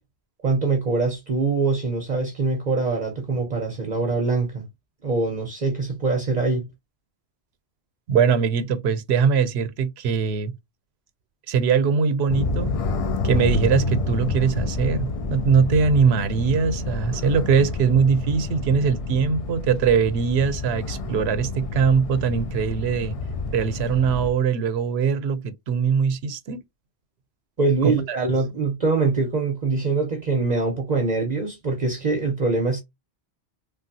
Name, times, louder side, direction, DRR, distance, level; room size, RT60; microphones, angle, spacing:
voice 1, 0.4-4.6 5.0-6.6 27.6-32.8, right 3 dB, 45° right, 0.8 m, -23 dB
voice 2, 8.1-10.5 11.5-12.8 13.2-23.2 23.5-26.6 27.8-28.2, right 6 dB, 90° right, 0.9 m, -21 dB
sound 1, 12.3-24.3, left 3 dB, 55° left, 0.4 m, -29 dB
3.3 x 2.3 x 2.6 m
omnidirectional pair, 1.1 m